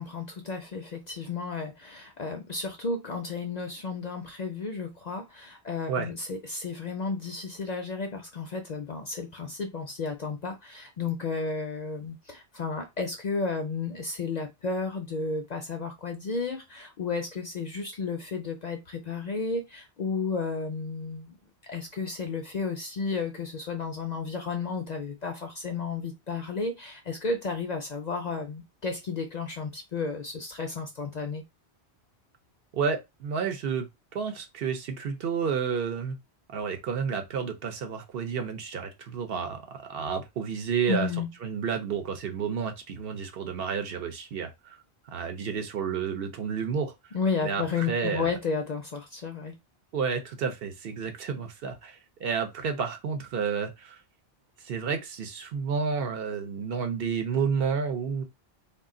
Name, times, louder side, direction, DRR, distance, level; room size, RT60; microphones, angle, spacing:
voice 1, 0.0-21.4 21.6-31.4 40.9-41.3 47.1-49.6, left 4 dB, 55° left, 0.5 m, -32 dB
voice 2, 32.7-33.9 34.1-36.2 36.5-41.1 41.4-47.2 47.4-48.3 49.9-54.0 54.6-58.2, right 6 dB, 65° right, 0.8 m, -31 dB
2.4 x 2.3 x 3.6 m
omnidirectional pair, 1.1 m